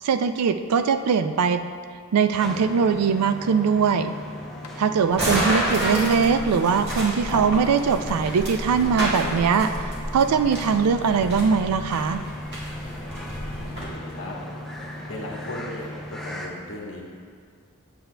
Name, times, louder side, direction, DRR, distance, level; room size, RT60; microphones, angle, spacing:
voice 1, 0.0-1.6 2.1-4.1 4.8-9.9 10.1-12.2, right 6 dB, 85° right, 10 dB, 0.4 m, -21 dB
sound 1, 2.4-15.6, left 1 dB, 80° left, 0.6 m, -47 dB
sound 2, 2.4-16.5, left 1 dB, ahead, 0.5 m, -38 dB
sound 3, 5.1-13.8, right 1 dB, 50° right, 1.7 m, -30 dB
voice 2, 13.6-14.4 15.1-17.0, left 1 dB, 60° left, -2 dB, 1.1 m, -36 dB
8.0 x 7.7 x 2.2 m, 2.2 s
head